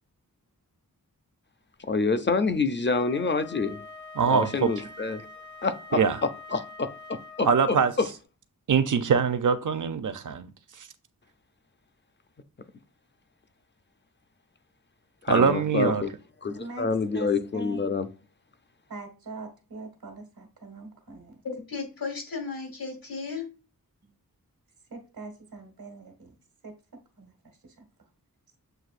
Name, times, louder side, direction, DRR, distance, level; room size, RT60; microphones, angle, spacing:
voice 1, 1.8-3.8 4.3-5.2 5.6-8.1 15.2-16.1 16.4-18.1, left 4 dB, 35° left, 0.4 m, -27 dB
Wind instrument woodwind instrument, 2.9-7.8, left 3 dB, 55° left, 0.8 m, -45 dB
voice 2, 4.2-4.7 5.9-6.2 7.5-7.9 8.7-10.5 10.8-10.9 15.3-16.0, right 6 dB, 60° right, 0.5 m, -23 dB
voice 3, 17.1-17.8 18.9-21.4 24.9-26.3 26.6-27.3 27.6-27.8, right 3 dB, 90° right, 1.3 m, -42 dB
voice 4, 21.4-23.5, left 4 dB, 75° left, 1.6 m, -34 dB
7.6 x 2.6 x 2.5 m
wide cardioid pair, 105°, 35 cm